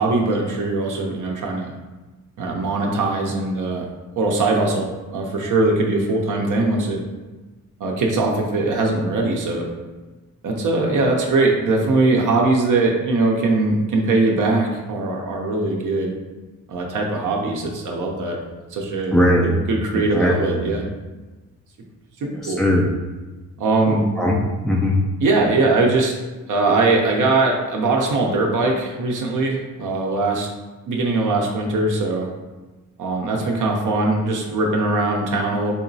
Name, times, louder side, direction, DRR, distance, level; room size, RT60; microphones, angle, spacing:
voice 1, 0.0-1.7 2.4-3.8 4.2-7.0 7.8-9.7 10.4-16.1 16.7-18.4 18.7-19.1 19.4-20.9 22.2-22.6 23.6-24.0 25.2-26.1 26.5-30.5 30.9-32.3 33.0-35.7, right 2 dB, 65° right, 0 dB, 0.7 m, -21 dB
voice 2, 19.1-19.5 19.9-20.7 22.4-22.9 23.9-25.0, left 1 dB, ahead, -3 dB, 0.3 m, -20 dB
4.2 x 2.9 x 2.7 m, 1.2 s
cardioid pair, 105°, 34 cm